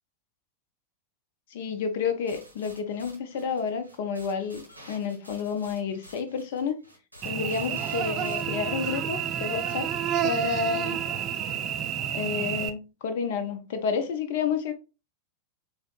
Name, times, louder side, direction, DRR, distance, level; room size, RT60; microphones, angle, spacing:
voice 1, 1.5-6.8 7.2-9.9 10.2-11.0 12.1-14.7, left 6 dB, 55° left, 0.5 m, -30 dB
sound 1, 2.3-8.4, equal, 90° right, 0.8 m, -51 dB
Cricket / Buzz, 7.2-12.7, right 9 dB, 35° right, 0.3 m, -30 dB
4.1 x 2.0 x 2.4 m
figure-of-eight pair, 90°, 0 cm